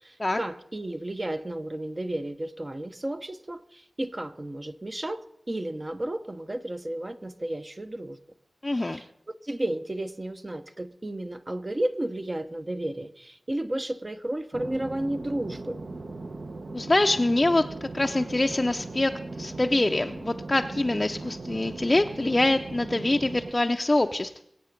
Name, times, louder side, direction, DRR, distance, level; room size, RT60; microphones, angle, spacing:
voice 1, 0.0-8.2 8.7-15.8, right 1 dB, 30° right, 9 dB, 0.7 m, -33 dB
voice 2, 8.6-9.0 16.7-24.4, left 2 dB, 30° left, 5 dB, 0.5 m, -25 dB
sound 1, 14.5-23.5, right 3 dB, 60° right, 0.9 m, -38 dB
23.5 x 8.3 x 5.1 m, 0.76 s
wide cardioid pair, 90°, 0 cm